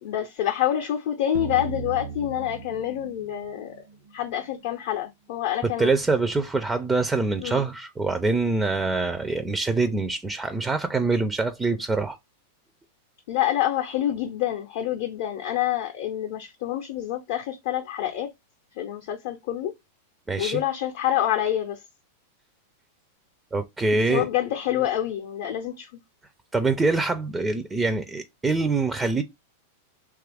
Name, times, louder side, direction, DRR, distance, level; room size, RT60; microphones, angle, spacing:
voice 1, 0.0-3.8 4.1-5.9 7.4-7.6 13.3-18.3 18.8-19.7 20.4-21.8 23.9-25.9, left 12 dB, 60° left, 0.5 m, -27 dB
sound 1, 1.3-4.3, right 6 dB, 75° right, 0.5 m, -37 dB
voice 2, 5.8-12.2 20.3-20.6 23.5-24.3 26.5-29.2, right 3 dB, 10° right, 0.3 m, -24 dB
3.0 x 2.3 x 3.3 m
hypercardioid pair, 120°, 0 cm